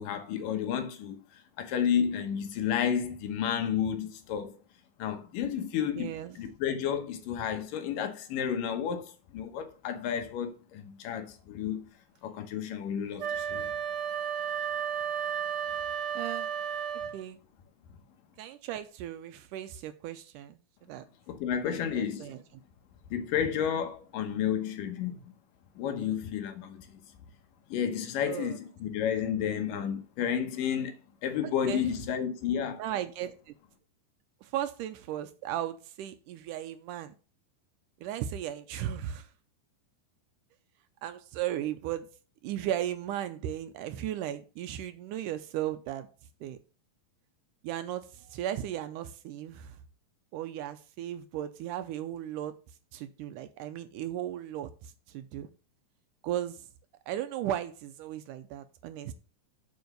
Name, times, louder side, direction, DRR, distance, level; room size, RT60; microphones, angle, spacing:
voice 1, 0.0-4.6 5.0-11.8 12.2-13.7 21.3-22.3 23.1-25.3 25.8-27.0 27.7-31.0 31.2-32.8, left 8 dB, 75° left, 2.7 m, -31 dB
voice 2, 6.0-6.4 16.1-16.5 17.1-17.4 18.4-21.1 21.7-22.4 28.3-28.6 31.4-31.9 32.8-33.6 34.4-37.1 38.0-39.3 41.0-42.1 42.4-46.1 46.4-46.6 47.6-49.8 50.3-52.5 52.9-55.5 56.2-56.7 57.1-59.1, right 11 dB, 80° right, 2.0 m, -36 dB
Wind instrument woodwind instrument, 13.2-17.2, right 8 dB, 50° right, 1.9 m, -33 dB
7.9 x 4.7 x 6.6 m
omnidirectional pair, 4.0 m